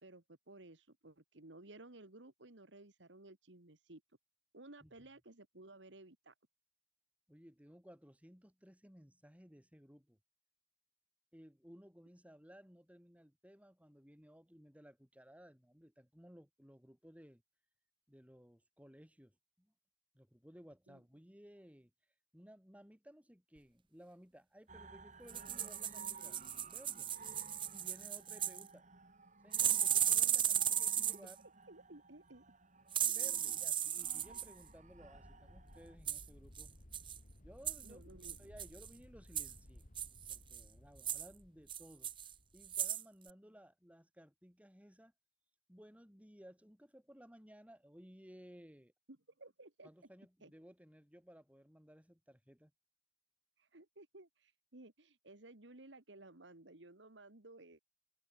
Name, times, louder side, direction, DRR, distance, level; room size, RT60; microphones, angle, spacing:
voice 1, 0.0-4.0 4.5-6.3 20.9-21.0 31.1-31.3 31.7-32.4 33.1-33.6 37.8-38.4 49.1-49.9 50.4-50.5 53.6-57.8, right 2 dB, 75° right, 2.2 m, -57 dB
voice 2, 7.3-10.2 11.3-17.4 18.1-19.7 20.1-21.9 22.3-26.4 26.7-27.1 27.7-28.9 29.4-31.4 33.0-36.7 37.4-38.0 38.4-39.9 40.3-42.1 42.5-45.1 45.7-48.9 49.8-52.7, equal, 10° right, 5.8 m, -59 dB
sound 1, 24.7-36.0, right 3 dB, 40° right, 5.8 m, -56 dB
sound 2, 25.3-28.6 29.5-31.3 32.9-34.5 36.1-36.2 36.6-36.7 36.9-37.2 37.6-37.9 38.2-38.9 39.3-39.5 40.0-40.6 41.0-41.3 41.7-42.3 42.6-43.0 43.3-43.4, right 9 dB, 25° right, 0.7 m, -35 dB
sound 3, 32.9-42.9, left 1 dB, 45° left, 2.4 m, -60 dB
head